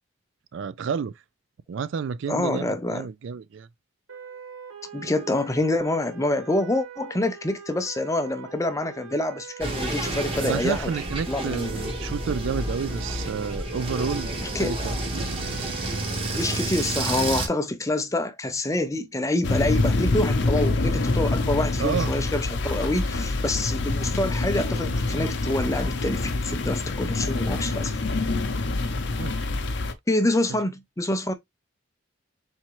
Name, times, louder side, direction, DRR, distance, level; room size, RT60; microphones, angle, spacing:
voice 1, 0.5-1.1 1.7-3.7 10.4-15.7 21.8-22.2 28.8-29.4 30.5-30.6, right 6 dB, 65° right, 0.3 m, -30 dB
voice 2, 2.3-3.1 4.9-10.9 11.3-11.8 14.4-14.8 16.3-28.0 30.1-31.3, left 1 dB, 15° left, 0.5 m, -26 dB
sound 1, 4.1-16.6, right 7 dB, 85° right, 1.3 m, -43 dB
sound 2, 9.6-17.5, right 1 dB, 25° right, 1.3 m, -30 dB
sound 3, 19.4-29.9, left 2 dB, 55° left, 0.7 m, -26 dB
4.3 x 3.5 x 3.0 m
head